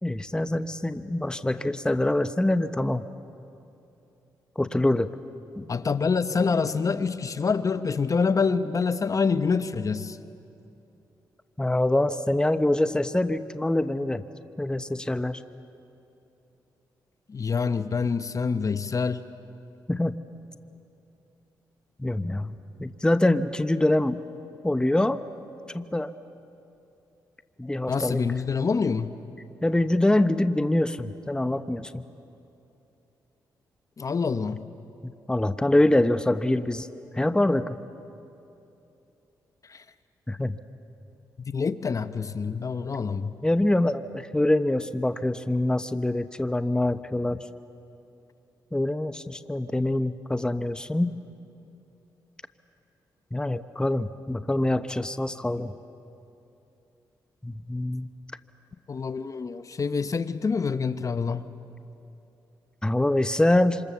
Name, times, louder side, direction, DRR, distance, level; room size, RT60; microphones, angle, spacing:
voice 1, 0.0-3.0 4.6-5.1 5.6-5.7 11.6-14.2 14.6-15.4 19.9-20.1 22.0-22.5 22.8-24.2 24.6-25.2 25.7-26.1 27.6-28.2 29.6-32.0 35.3-36.9 37.1-37.8 40.3-40.6 43.4-47.4 48.7-51.1 53.3-55.7 57.4-58.1 62.8-63.8, left 1 dB, 10° left, 0.9 m, -24 dB
voice 2, 5.7-10.2 17.3-19.2 27.9-29.1 34.0-34.6 39.7-39.8 41.4-43.4 58.9-61.5, left 5 dB, 45° left, 0.8 m, -26 dB
26.5 x 26.5 x 7.1 m
cardioid pair, 60°, 8 cm